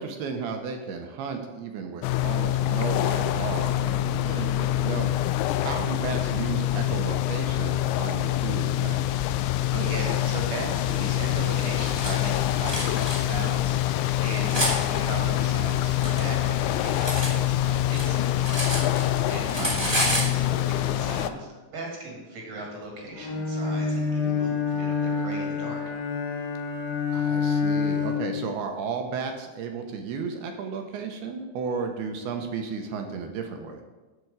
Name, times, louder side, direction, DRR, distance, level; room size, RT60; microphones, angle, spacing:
voice 1, 0.0-5.1 5.6-9.0 19.6-19.9 27.1-33.8, right 5 dB, 75° right, 4 dB, 2.5 m, -33 dB
sound 1, 2.0-21.3, left 13 dB, 90° left, 2.9 m, -25 dB
voice 2, 4.2-4.6 9.7-18.5 18.8-25.8, right 2 dB, 50° right, 0 dB, 2.0 m, -37 dB
Cutlery silverware, 11.5-12.1 12.6-13.2 13.9-14.7 15.6-17.3 17.6-19.2 19.5-20.3, equal, 15° right, 0.9 m, -29 dB
Bowed string instrument, 23.2-28.5, left 5 dB, 65° left, 2.5 m, -27 dB
11.5 x 4.5 x 8.0 m, 1.2 s
omnidirectional pair, 5.2 m